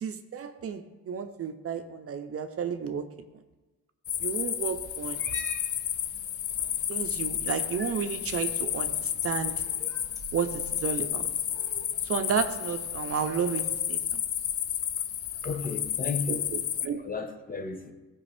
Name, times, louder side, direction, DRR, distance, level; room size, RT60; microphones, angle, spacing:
voice 1, 0.0-3.1 4.2-5.2 6.6-9.5 10.3-11.3 12.0-13.6 13.9-14.2 16.3-17.0, right 7 dB, 50° right, 0.7 m, -32 dB
sound 1, 4.1-16.9, left 10 dB, 50° left, 0.6 m, -31 dB
Cat, 4.8-13.8, right 1 dB, 10° left, 2.0 m, -48 dB
voice 2, 15.4-16.5 17.0-17.9, left 4 dB, 30° left, 1.1 m, -34 dB
14.5 x 5.3 x 3.4 m
cardioid pair, 90°, 30 cm